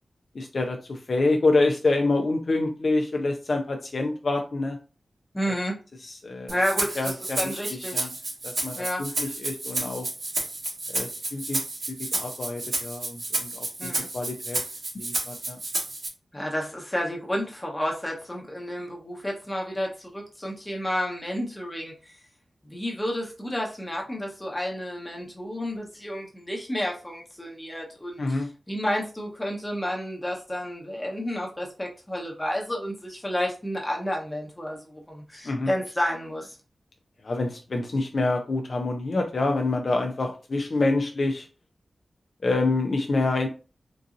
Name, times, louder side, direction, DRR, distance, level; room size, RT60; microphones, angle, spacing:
voice 1, 0.3-4.8 6.0-6.6 7.0-8.1 8.4-10.1 10.9-11.6 12.2-14.6 14.9-15.6 28.2-28.5 35.4-35.7 37.2-41.5 42.4-43.5, left 2 dB, 50° left, 3 dB, 0.4 m, -27 dB
voice 2, 5.3-5.8 6.5-8.1 8.8-9.0 13.8-14.1 16.3-22.2 22.6-28.2 28.7-36.6, equal, 15° left, -2 dB, 0.9 m, -31 dB
Rattle (instrument), 6.5-16.1, right 2 dB, 80° right, 1.5 m, -31 dB
3.8 x 2.6 x 2.5 m, 0.34 s
wide cardioid pair, 135°, 0 cm